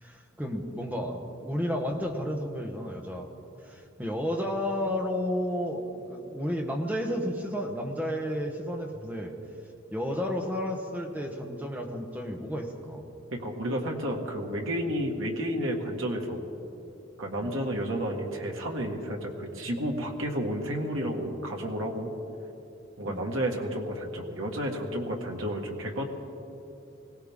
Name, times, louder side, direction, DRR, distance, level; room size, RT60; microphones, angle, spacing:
voice 1, 0.0-3.3 3.6-9.3 9.9-13.0 17.4-17.6 23.0-23.2, equal, 10° right, 2 dB, 1.1 m, -32 dB
voice 2, 13.3-16.5 17.2-22.1 23.0-26.0, equal, 90° right, 1 dB, 1.9 m, -31 dB
21.5 x 17.5 x 3.7 m, 2.9 s
head